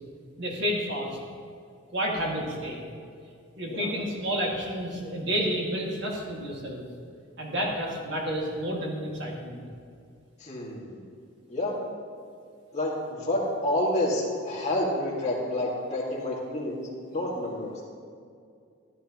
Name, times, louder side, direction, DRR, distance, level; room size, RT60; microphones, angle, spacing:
voice 1, 0.4-1.2 1.9-2.8 3.6-6.8 7.4-9.6, equal, 55° right, -2 dB, 2.1 m, -30 dB
voice 2, 10.4-11.0 11.5-11.8 12.7-17.7, left 1 dB, 30° left, -4 dB, 2.0 m, -29 dB
14.0 x 10.0 x 3.0 m, 2.3 s
head